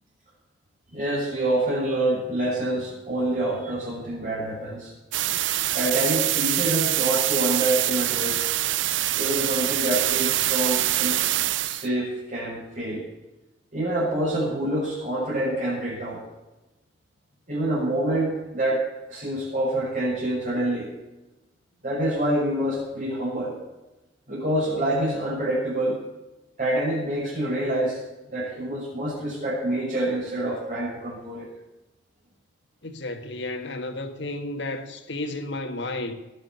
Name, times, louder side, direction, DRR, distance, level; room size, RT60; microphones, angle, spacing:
voice 1, 0.9-4.9 5.7-8.5 9.1-11.2 11.6-13.0 13.7-16.2 17.5-20.9 21.8-23.6 24.3-26.0 26.6-28.0 28.3-31.5, right 1 dB, 45° right, 7.3 m, -26 dB
sound 1, 5.1-11.9, right 14 dB, 85° right, 0.5 m, -24 dB
voice 2, 32.8-36.1, left 2 dB, 70° left, 1.8 m, -32 dB
21.0 x 7.8 x 6.8 m
head